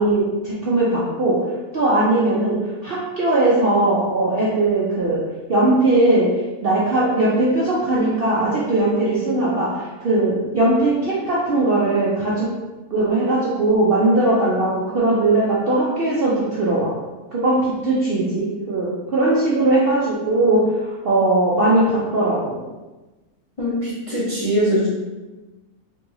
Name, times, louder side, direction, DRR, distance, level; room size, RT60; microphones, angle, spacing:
voice 1, 0.0-1.4 1.7-2.6 2.8-5.2 5.5-6.3 6.6-12.5 12.9-16.9 17.3-22.6, right 2 dB, 55° right, -7 dB, 0.7 m, -19 dB
voice 2, 23.6-24.9, equal, 30° left, -9 dB, 0.6 m, -21 dB
4.3 x 2.7 x 2.7 m, 1.1 s
omnidirectional pair, 1.6 m